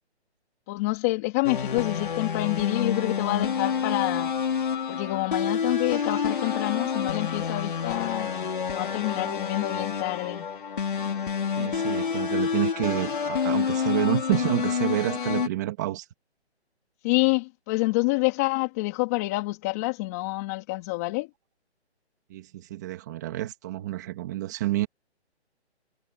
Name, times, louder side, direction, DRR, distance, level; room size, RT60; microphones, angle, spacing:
voice 1, 0.7-4.3 4.9-10.5 17.0-21.3, left 23 dB, 15° left, 3.0 m, -27 dB
sound 1, 1.4-15.5, left 6 dB, 45° left, 4.9 m, -28 dB
voice 2, 11.6-16.1 22.3-24.9, right 15 dB, 15° right, 2.2 m, -29 dB
hypercardioid pair, 175°, 34 cm